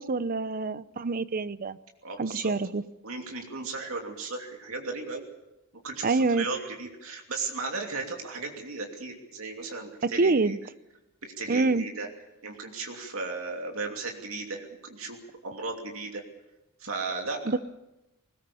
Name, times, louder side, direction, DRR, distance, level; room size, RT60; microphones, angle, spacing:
voice 1, 0.0-1.8 2.2-2.8 6.0-6.5 10.0-10.6 11.5-11.9 17.5-17.6, right 3 dB, 40° right, 16 dB, 0.7 m, -26 dB
voice 2, 2.0-2.5 3.0-5.2 5.8-10.5 11.2-12.1 12.4-15.2 15.4-16.2 16.8-17.4, right 3 dB, 70° right, 2 dB, 2.8 m, -35 dB
21.0 x 19.0 x 7.0 m, 0.94 s
head